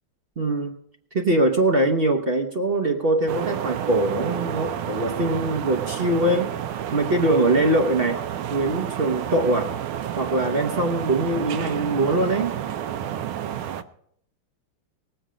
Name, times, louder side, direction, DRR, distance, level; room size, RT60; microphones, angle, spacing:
voice 1, 0.4-0.7 1.1-6.5 6.9-8.2 8.5-9.7 10.2-12.5, right 1 dB, 50° right, 4 dB, 0.7 m, -22 dB
sound 1, 3.3-13.8, right 10 dB, 85° right, 1.6 m, -30 dB
19.5 x 7.9 x 5.0 m, 0.68 s
omnidirectional pair, 2.3 m